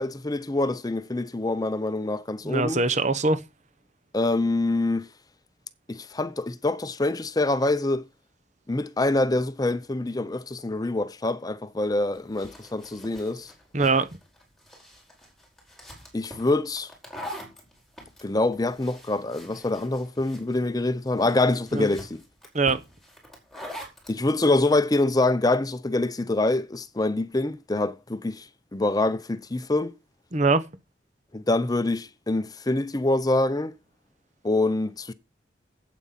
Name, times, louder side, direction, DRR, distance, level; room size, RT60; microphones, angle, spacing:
voice 1, 0.0-2.8 4.1-5.1 5.9-8.0 8.7-13.5 16.1-16.9 18.2-22.2 24.1-29.9 31.3-33.7 34.4-35.1, left 2 dB, 20° left, 0.6 m, -25 dB
voice 2, 2.4-3.4 13.7-14.1 21.7-21.9 22.5-22.8 30.3-30.6, right 3 dB, 40° right, 1.0 m, -22 dB
sound 1, 11.8-24.2, equal, ahead, 4.8 m, -44 dB
8.8 x 8.5 x 5.8 m
head